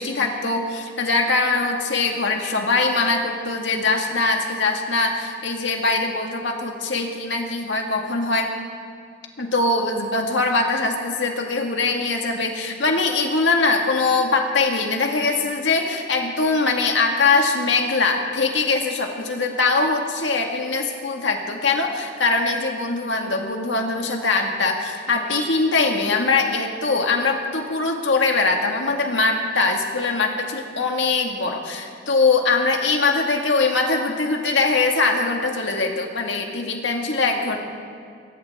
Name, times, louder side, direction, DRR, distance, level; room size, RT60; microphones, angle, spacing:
voice 1, 0.0-8.5 9.4-37.6, left 3 dB, 75° left, 2 dB, 1.9 m, -22 dB
22.5 x 18.0 x 3.6 m, 2.3 s
head